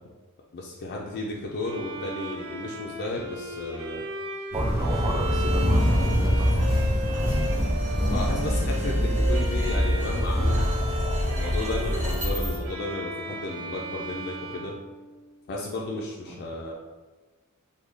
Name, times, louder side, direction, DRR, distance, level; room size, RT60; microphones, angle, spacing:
voice 1, 0.5-4.0 8.1-10.6 11.4-14.7 15.5-16.7, left 2 dB, 45° left, -2 dB, 0.4 m, -33 dB
Bowed string instrument, 1.6-15.5, right 1 dB, 75° right, 0.6 m, -36 dB
voice 2, 4.5-6.8 16.3-16.4, right 1 dB, 20° right, 0 dB, 0.5 m, -34 dB
sound 1, 4.5-12.6, equal, 50° right, 1.3 m, -24 dB
sound 2, 5.4-12.3, equal, 35° right, 1.0 m, -41 dB
3.2 x 2.2 x 3.7 m, 1.3 s
head